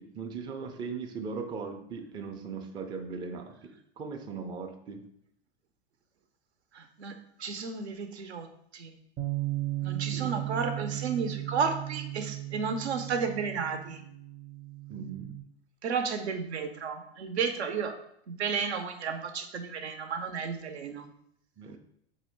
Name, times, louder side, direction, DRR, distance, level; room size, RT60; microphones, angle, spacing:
voice 1, 0.0-5.0 10.1-10.3 14.9-15.3 21.6-21.8, right 5 dB, 15° right, 4 dB, 0.4 m, -39 dB
voice 2, 6.7-7.1 7.4-8.5 8.7-8.9 9.8-14.0 15.8-17.9 18.3-21.1, right 5 dB, 85° right, 6 dB, 0.7 m, -32 dB
Bass guitar, 9.2-15.4, right 16 dB, 45° right, 0.8 m, -36 dB
4.2 x 2.7 x 4.4 m, 0.73 s
hypercardioid pair, 100°, 32 cm